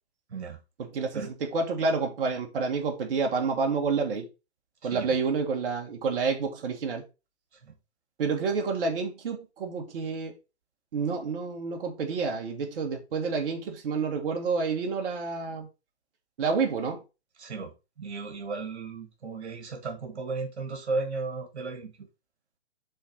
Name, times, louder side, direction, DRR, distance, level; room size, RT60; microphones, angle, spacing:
voice 1, 0.8-4.3 4.8-7.0 8.2-10.3 10.9-15.7 16.4-17.0, right 4 dB, 55° right, 1.7 m, -29 dB
voice 2, 17.4-17.7 18.0-21.9, right 3 dB, 75° right, 1.9 m, -34 dB
5.6 x 3.9 x 5.1 m
hypercardioid pair, 135°, 34 cm